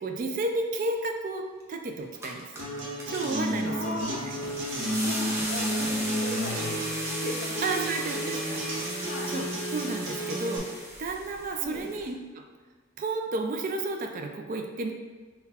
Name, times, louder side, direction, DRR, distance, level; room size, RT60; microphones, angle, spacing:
voice 1, 0.0-2.5 3.1-4.1 4.3-4.5 7.6-9.0 9.3-12.4 13.0-14.9, right 2 dB, 40° right, 4 dB, 0.3 m, -32 dB
sound 1, 1.6-1.7 2.0-12.1, right 1 dB, 15° right, 0.7 m, -37 dB
Acoustic guitar, 2.6-10.6, equal, 65° right, 0.9 m, -32 dB
voice 2, 3.6-4.2 5.0-7.6 8.0-8.7 9.0-9.3 11.6-11.9, left 1 dB, 45° left, 0 dB, 0.6 m, -38 dB
3.9 x 2.2 x 4.1 m, 1.4 s
head